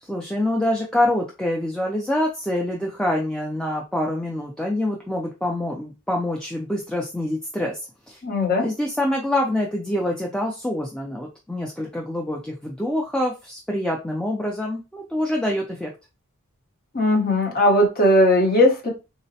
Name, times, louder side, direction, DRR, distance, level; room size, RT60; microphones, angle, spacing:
voice 1, 0.0-7.8 8.1-8.2 8.6-15.9, left 1 dB, 5° left, -1 dB, 0.3 m, -26 dB
voice 2, 8.2-8.7 16.9-18.9, left 1 dB, 40° left, 1 dB, 0.9 m, -18 dB
3.8 x 2.0 x 2.7 m, 0.29 s
head